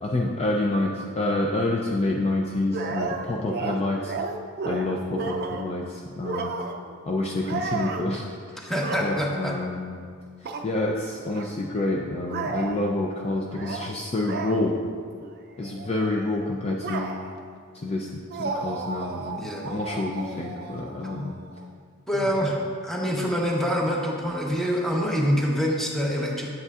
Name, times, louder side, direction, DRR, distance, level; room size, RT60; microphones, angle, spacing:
voice 1, 0.0-4.1 4.6-6.5 7.1-8.2 9.0-10.0 10.6-14.8 15.6-17.1 17.7-21.4 22.4-22.5, left 2 dB, 30° left, -1 dB, 0.4 m, -28 dB
sound 1, 2.7-5.8 6.2-7.0 7.4-8.1 8.7-9.4 10.4-10.7 11.3-11.5 12.3-12.9 13.5-13.9 14.2-14.6 15.2-15.4 15.6-17.5 18.3-21.6, right 4 dB, 45° right, 0.4 m, -33 dB
voice 2, 8.6-9.5 19.4-19.6 21.1-21.3 22.1-22.6 22.8-26.5, equal, ahead, -3 dB, 0.9 m, -25 dB
8.1 x 7.7 x 2.4 m, 2.1 s
head